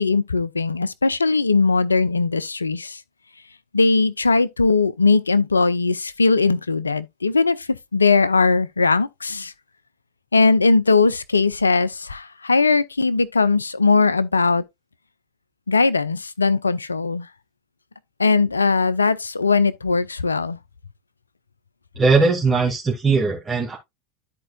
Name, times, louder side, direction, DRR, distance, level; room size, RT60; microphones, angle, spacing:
voice 1, 0.0-3.0 3.7-9.5 10.3-14.6 15.7-17.3 18.2-20.6, left 4 dB, 85° left, 0.5 m, -19 dB
voice 2, 22.0-23.8, right 4 dB, 20° right, 2.2 m, -19 dB
13.5 x 4.5 x 2.3 m
figure-of-eight pair, 80°, 0 cm